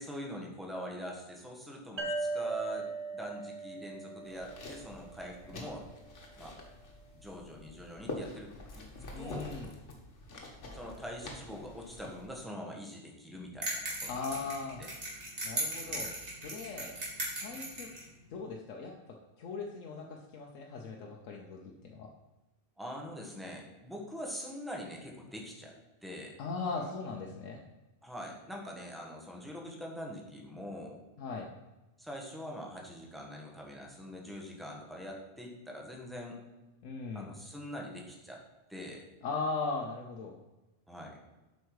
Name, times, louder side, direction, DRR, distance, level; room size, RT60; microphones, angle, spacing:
voice 1, 0.0-5.9 6.4-6.5 7.1-8.5 8.7-8.9 9.2-9.6 10.7-14.5 14.8-14.9 15.8-16.1 22.8-25.7 26.0-26.4 26.7-26.9 28.0-31.0 32.0-36.4 37.1-38.4 38.7-39.1 40.9-41.2, equal, ahead, 0 dB, 1.3 m, -43 dB
sound 1, 2.0-5.4, right 3 dB, 25° right, 0.8 m, -38 dB
sound 2, 4.2-12.3, left 2 dB, 70° left, 1.6 m, -46 dB
voice 2, 9.1-9.7 14.1-14.8 15.4-16.1 16.4-16.9 17.4-17.9 18.3-18.9 19.4-21.6 21.8-22.1 26.4-27.6 31.2-31.5 36.8-37.3 39.2-40.3, left 4 dB, 90° left, 0 dB, 1.2 m, -38 dB
sound 3, 13.6-18.0, right 1 dB, 65° right, 2.6 m, -37 dB
7.9 x 5.4 x 4.8 m, 1.1 s
omnidirectional pair, 1.3 m